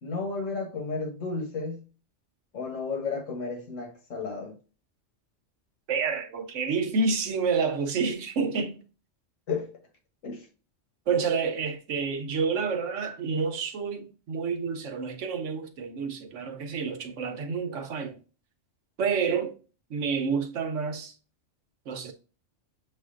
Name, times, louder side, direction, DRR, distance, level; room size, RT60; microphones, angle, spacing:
voice 1, 0.0-1.8 2.5-4.5 9.5-9.7 10.2-10.4, left 4 dB, 85° left, 1.4 m, -33 dB
voice 2, 5.9-8.8 11.1-18.2 19.0-19.6 19.9-21.1 21.9-22.1, right 5 dB, 80° right, 1.1 m, -29 dB
6.8 x 2.5 x 2.5 m
omnidirectional pair, 1.3 m